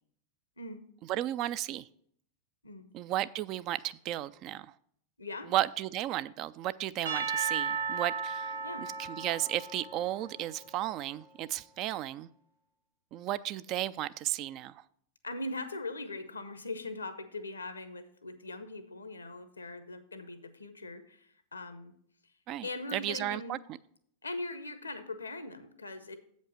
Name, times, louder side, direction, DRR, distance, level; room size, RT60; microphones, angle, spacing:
voice 1, 1.1-1.9 2.9-4.7 5.5-8.5 9.0-12.3 13.1-14.8 22.5-23.6, right 13 dB, 40° right, 0.3 m, -34 dB
voice 2, 5.2-5.5 8.6-8.9 15.2-21.9 22.6-23.6 24.2-26.2, left 2 dB, 80° left, 0.8 m, -41 dB
Percussion / Church bell, 7.1-11.2, right 6 dB, 70° right, 1.3 m, -36 dB
7.9 x 5.2 x 6.4 m
figure-of-eight pair, 90°, 0 cm